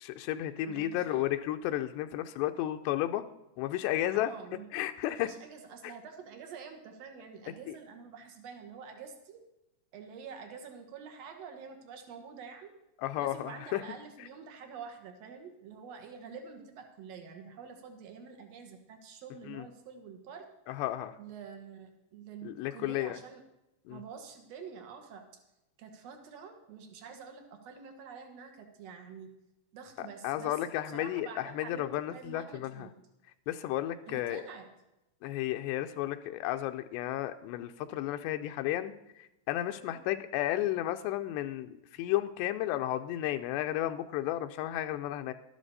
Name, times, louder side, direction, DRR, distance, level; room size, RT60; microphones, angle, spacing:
voice 1, 0.0-3.2 3.6-4.3 4.7-5.3 5.8-5.9 13.0-13.8 19.5-19.6 20.7-21.2 22.4-23.2 23.9-24.0 30.2-32.9 33.5-34.4 35.2-45.3, left 13 dB, 85° left, 7 dB, 2.8 m, -33 dB
voice 2, 0.6-1.3 4.1-4.7 5.1-9.4 9.9-12.7 13.2-20.4 21.2-23.4 23.9-25.2 25.8-29.3 29.7-30.6 30.9-32.9 34.1-34.7 39.8-40.0, right 6 dB, 65° right, 5 dB, 1.6 m, -47 dB
12.5 x 12.5 x 4.1 m, 0.91 s
omnidirectional pair, 4.9 m